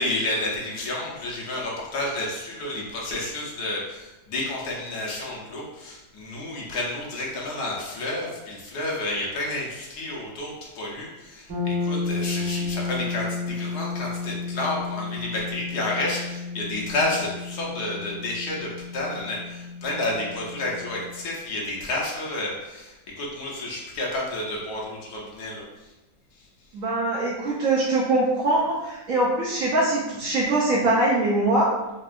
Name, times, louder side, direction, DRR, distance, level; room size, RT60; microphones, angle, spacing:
voice 1, 0.0-25.6, left 2 dB, 70° left, -3 dB, 1.2 m, -30 dB
sound 1, 11.5-21.3, left 4 dB, 85° right, 1.9 m, -32 dB
voice 2, 26.7-31.7, right 2 dB, 70° right, -4 dB, 0.8 m, -22 dB
4.3 x 2.3 x 2.4 m, 1.0 s
omnidirectional pair, 1.9 m